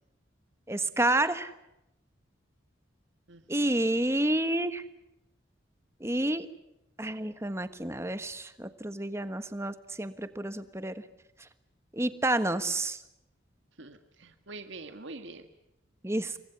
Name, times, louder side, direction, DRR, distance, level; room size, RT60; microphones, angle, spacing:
voice 1, 0.7-1.5 3.5-4.8 6.0-6.5 7.0-11.0 11.9-13.0 16.0-16.3, right 1 dB, 15° right, 11 dB, 1.4 m, -29 dB
voice 2, 3.3-4.0 13.8-15.5, right 3 dB, 70° right, 7 dB, 1.7 m, -45 dB
28.5 x 24.0 x 7.0 m, 0.89 s
head